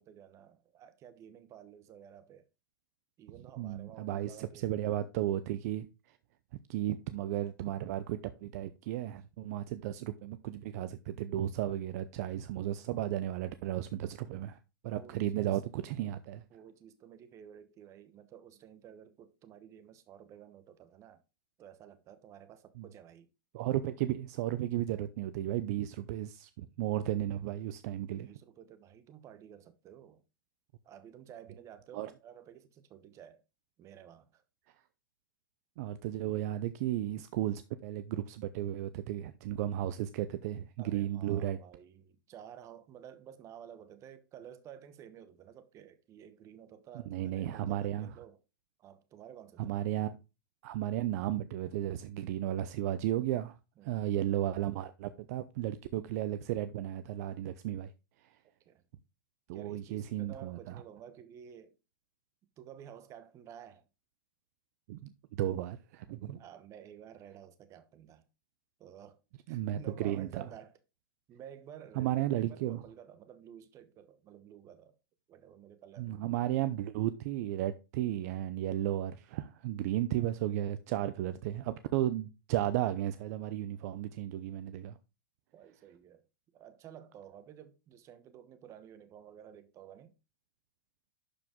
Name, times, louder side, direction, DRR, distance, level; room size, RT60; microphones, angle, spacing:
voice 1, 0.0-2.5 3.2-4.9 9.4-9.7 15.0-15.6 16.5-21.2 21.6-23.3 28.1-30.2 30.8-33.4 33.8-34.4 40.8-48.4 48.8-49.7 53.8-54.1 58.7-58.8 59.5-61.8 62.6-63.8 66.4-68.3 68.8-69.2 69.5-70.8 71.3-75.0 75.3-76.2 85.5-86.3 86.5-90.2, right 9 dB, 25° right, 1.1 m, -52 dB
voice 2, 3.6-5.9 6.7-14.6 14.8-16.4 22.8-22.9 23.5-28.3 31.9-32.1 35.8-41.6 47.1-48.1 49.6-50.2 50.6-53.6 53.8-57.9 59.5-60.8 64.9-65.1 65.4-66.4 69.5-70.4 72.0-72.8 76.0-85.0, right 13 dB, 50° right, 0.6 m, -34 dB
11.5 x 4.9 x 3.7 m
hypercardioid pair, 135°, 11 cm